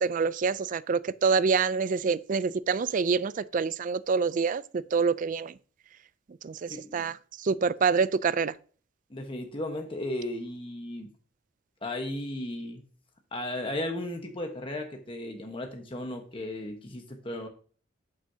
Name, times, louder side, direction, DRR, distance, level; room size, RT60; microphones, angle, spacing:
voice 1, 0.0-5.5 6.4-7.2 7.4-8.5, right 5 dB, 45° right, 0.4 m, -26 dB
voice 2, 6.7-7.0 9.1-11.1 11.8-12.8 13.3-17.5, left 1 dB, 30° left, 1.2 m, -35 dB
11.0 x 6.1 x 2.8 m
head